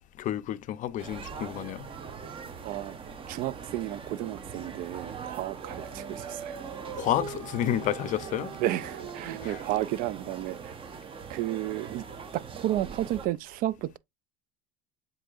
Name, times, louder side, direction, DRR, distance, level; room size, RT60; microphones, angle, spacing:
voice 1, 0.2-1.9 6.9-8.5 9.4-9.6, left 12 dB, 40° left, 0.5 m, -30 dB
sound 1, 1.0-13.3, right 6 dB, 30° right, 0.8 m, -42 dB
voice 2, 2.6-2.9 3.3-6.6 8.6-10.7 11.3-12.0 12.3-14.0, right 14 dB, 50° right, 0.4 m, -32 dB
Dog, 5.3-10.9, right 9 dB, 70° right, 0.9 m, -43 dB
7.4 x 2.7 x 2.4 m
supercardioid pair, 110°, 19 cm